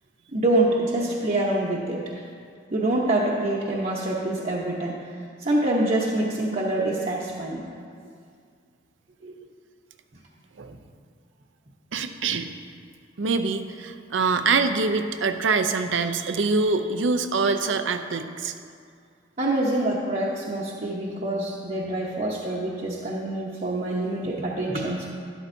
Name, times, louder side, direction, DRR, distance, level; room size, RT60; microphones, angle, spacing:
voice 1, 0.3-2.2 2.7-5.0 5.4-7.6 9.2-9.3 19.4-25.1, right 1 dB, 45° right, -5 dB, 0.9 m, -26 dB
voice 2, 11.9-12.5 13.2-18.5, right 4 dB, 80° right, 8 dB, 0.6 m, -24 dB
12.5 x 11.0 x 2.7 m, 2.2 s
head